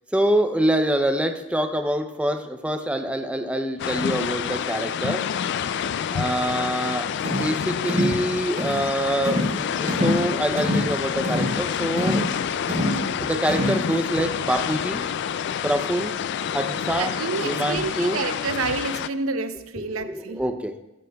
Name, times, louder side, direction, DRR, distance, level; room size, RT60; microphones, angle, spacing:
voice 1, 0.1-5.3 6.1-12.3 13.2-15.1 15.6-16.2 16.5-17.2 17.4-18.2 19.8-20.8, right 1 dB, 5° right, 0.5 m, -25 dB
sound 1, 3.8-19.1, left 8 dB, 55° left, 0.3 m, -28 dB
sound 2, 7.2-7.5 7.9-8.2 8.6-8.8 9.2-9.6 9.9-10.2 10.6-10.9 11.2-11.6 12.0-12.3 12.7-13.0 13.5-13.8, left 1 dB, 40° right, 3.6 m, -25 dB
voice 2, 17.0-20.4, right 4 dB, 90° right, 0.7 m, -29 dB
15.0 x 14.0 x 2.3 m
head